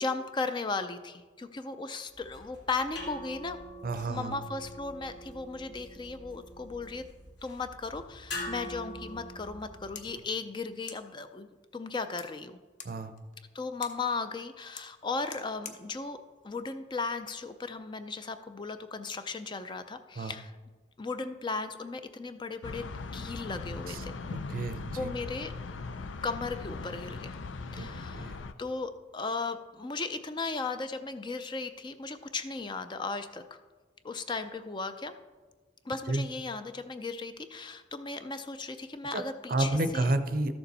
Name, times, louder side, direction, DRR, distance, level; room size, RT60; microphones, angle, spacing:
voice 1, 0.0-3.6 4.1-7.0 7.4-12.6 13.5-16.2 16.4-20.5 21.0-24.1 24.9-25.5 26.2-27.4 27.7-28.3 28.6-33.4 34.0-35.1 35.8-40.1, left 4 dB, 25° left, 9 dB, 0.4 m, -36 dB
sound 1, 2.1-10.2, equal, 65° left, 2.6 m, -44 dB
voice 2, 3.8-4.4 12.8-13.1 20.2-20.3 23.9-24.0 24.3-25.1 27.8-28.4 36.1-36.2 39.1-39.2 39.5-40.5, right 2 dB, 50° right, 10 dB, 0.6 m, -31 dB
sound 2, 9.9-17.5, left 6 dB, 40° left, 0.8 m, -52 dB
sound 3, 22.6-28.5, left 3 dB, 85° left, 0.5 m, -39 dB
13.0 x 6.9 x 4.1 m, 1.3 s
head